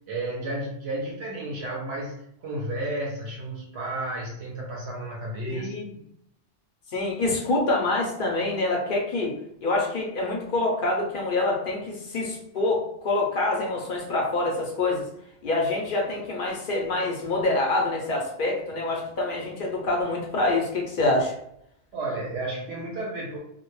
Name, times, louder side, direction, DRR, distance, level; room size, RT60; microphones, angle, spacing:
voice 1, 0.1-5.7 21.9-23.4, right 1 dB, 65° right, -2 dB, 0.8 m, -32 dB
voice 2, 5.5-5.9 6.9-9.3 9.6-15.0 15.4-21.3, left 2 dB, 55° left, -1 dB, 0.7 m, -26 dB
2.2 x 2.1 x 3.0 m, 0.74 s
omnidirectional pair, 1.2 m